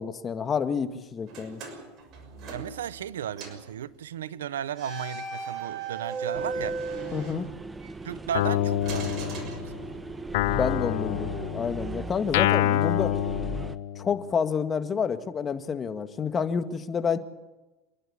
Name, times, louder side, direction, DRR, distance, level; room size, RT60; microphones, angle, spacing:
voice 1, 0.0-1.6 7.1-7.5 10.6-13.1 14.0-17.2, left 6 dB, 30° left, 1.9 m, -29 dB
sound 1, 1.3-3.1 3.4-3.7 4.7-7.9 8.8-10.2, right 4 dB, 50° right, 6.2 m, -37 dB
voice 2, 2.5-6.8 8.0-9.5, right 10 dB, 90° right, 0.7 m, -35 dB
sound 2, 6.3-13.8, right 2 dB, 15° right, 1.2 m, -38 dB
Guitar, 8.3-9.9 10.3-14.2, left 12 dB, 75° left, 0.8 m, -27 dB
27.5 x 11.5 x 10.0 m
hypercardioid pair, 100°, 0 cm